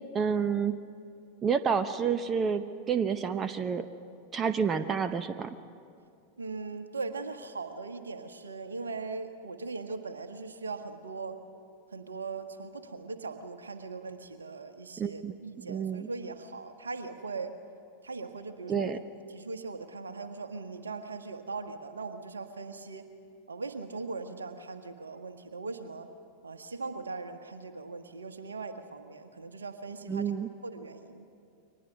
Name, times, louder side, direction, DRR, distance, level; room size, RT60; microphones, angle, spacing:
voice 1, 0.1-0.7 1.4-3.9 4.3-5.5 15.0-16.1 18.7-19.0 30.1-30.5, right 6 dB, 25° right, 11 dB, 0.8 m, -29 dB
voice 2, 6.4-11.4 11.9-17.5 18.0-18.9 19.3-23.1 23.5-26.1 26.4-30.3 30.6-31.3, right 4 dB, 75° right, 8 dB, 1.5 m, -40 dB
30.0 x 23.5 x 5.8 m, 2.4 s
figure-of-eight pair, 90°, 0 cm